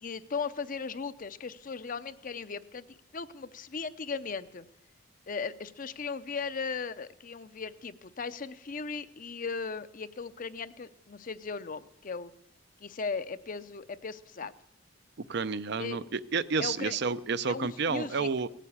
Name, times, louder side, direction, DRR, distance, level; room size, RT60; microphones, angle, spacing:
voice 1, 0.0-4.7 5.3-12.3 12.8-14.5 15.8-16.0 16.6-17.0 17.4-18.3, left 5 dB, 45° left, 13 dB, 0.6 m, -37 dB
voice 2, 15.3-18.5, right 5 dB, 60° right, 14 dB, 0.5 m, -30 dB
17.5 x 9.2 x 8.6 m, 0.81 s
head